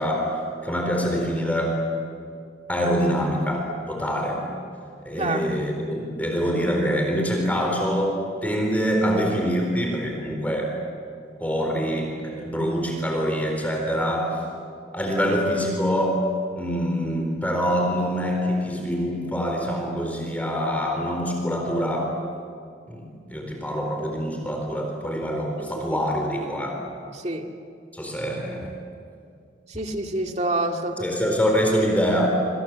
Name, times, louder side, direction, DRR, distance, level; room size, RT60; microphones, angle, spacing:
voice 1, 0.0-1.8 2.7-4.4 5.0-10.8 11.4-14.4 14.9-16.3 16.6-22.2 22.9-26.8 27.9-28.8 31.0-32.3, equal, 10° left, 1 dB, 4.2 m, -25 dB
voice 2, 25.7-26.0 27.1-27.5 29.7-31.2, right 2 dB, 35° right, 3 dB, 2.2 m, -28 dB
27.5 x 27.0 x 7.5 m, 2.3 s
head